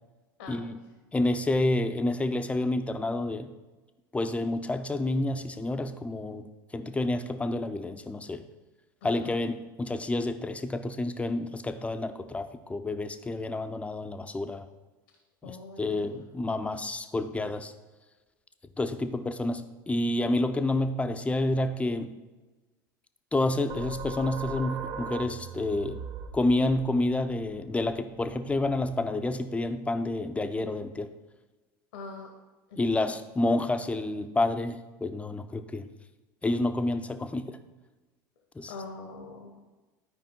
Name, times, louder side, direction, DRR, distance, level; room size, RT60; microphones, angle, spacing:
voice 1, 0.5-0.8 1.1-3.5 4.1-8.5 9.0-14.7 15.4-17.7 18.8-22.2 23.3-26.0 26.3-31.1 32.8-35.9 36.4-37.6 38.6-38.7, left 2 dB, 10° left, 9 dB, 0.6 m, -29 dB
voice 2, 9.0-9.3 15.4-16.1 31.9-32.3 32.7-33.1 38.7-39.6, left 3 dB, 75° left, 2 dB, 1.3 m, -43 dB
sound 1, 23.7-29.0, right 4 dB, 50° right, 0.8 m, -40 dB
12.5 x 5.0 x 3.8 m, 1.2 s
hypercardioid pair, 80°, 11 cm